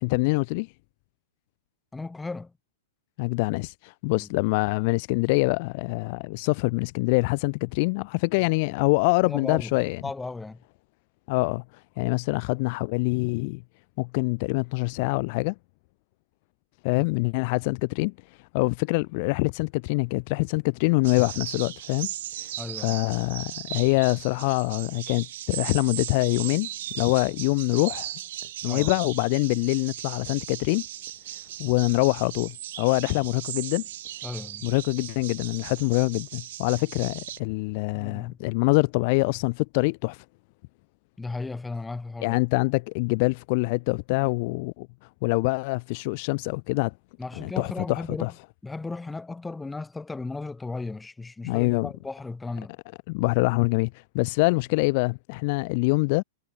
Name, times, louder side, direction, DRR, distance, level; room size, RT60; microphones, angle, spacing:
voice 1, 0.0-0.7 3.2-10.0 11.3-11.6 12.0-13.6 14.0-15.5 16.8-18.1 18.5-22.1 22.4-22.5 22.8-26.7 26.9-28.1 28.6-30.8 31.6-33.8 34.6-40.2 42.2-44.9 45.2-46.9 47.4-48.3 51.4-51.9 53.1-56.2, left 28 dB, 50° left, 0.5 m, -25 dB
voice 2, 1.9-2.5 4.1-4.3 9.2-9.8 10.0-10.6 17.0-17.1 22.6-23.0 28.6-28.9 34.2-34.7 37.9-38.4 41.2-42.4 47.2-48.3 48.6-52.7, left 3 dB, 10° left, 2.8 m, -35 dB
sound 1, 21.0-37.4, right 13 dB, 65° right, 2.6 m, -37 dB
hypercardioid pair, 120°, 0 cm